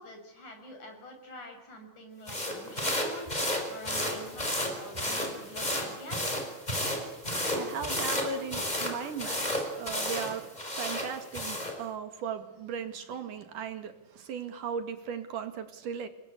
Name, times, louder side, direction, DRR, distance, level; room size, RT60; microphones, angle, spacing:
voice 1, 0.0-3.2 3.7-6.2, left 1 dB, 65° left, 7.9 m, -46 dB
sound 1, 2.3-11.8, left 1 dB, 10° left, 5.3 m, -32 dB
voice 2, 7.5-16.1, right 7 dB, 75° right, 3.7 m, -37 dB
30.0 x 22.0 x 8.4 m
omnidirectional pair, 3.7 m